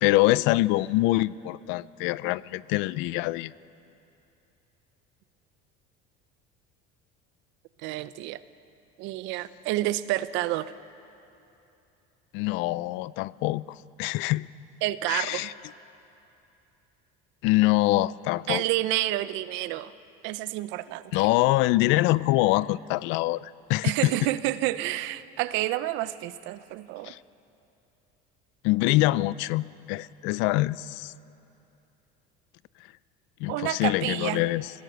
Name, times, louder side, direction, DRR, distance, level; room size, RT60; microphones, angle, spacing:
voice 1, 0.0-3.5 12.3-13.6 14.0-14.5 15.1-15.5 17.4-18.6 21.1-24.1 27.0-27.2 28.6-31.1 33.4-34.7, left 18 dB, 70° left, 20 dB, 0.5 m, -24 dB
voice 2, 7.8-8.4 9.0-10.7 14.8-15.5 18.5-19.9 20.2-21.3 23.8-27.1 33.5-34.4, right 15 dB, 65° right, 15 dB, 0.7 m, -29 dB
25.5 x 17.5 x 6.6 m, 2.8 s
cardioid pair, 150°, 20 cm